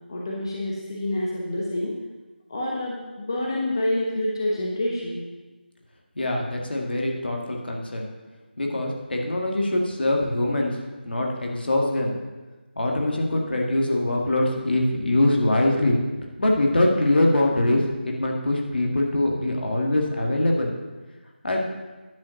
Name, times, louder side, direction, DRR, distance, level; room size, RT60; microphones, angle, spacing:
voice 1, 0.1-1.9 2.5-5.2, left 1 dB, 25° left, -3 dB, 0.9 m, -27 dB
voice 2, 6.2-8.1 8.6-10.8 11.0-12.1 12.8-16.0 16.4-20.7 21.4-21.6, left 1 dB, 65° left, 0 dB, 1.9 m, -23 dB
10.5 x 5.4 x 6.4 m, 1.2 s
figure-of-eight pair, 175°, 6 cm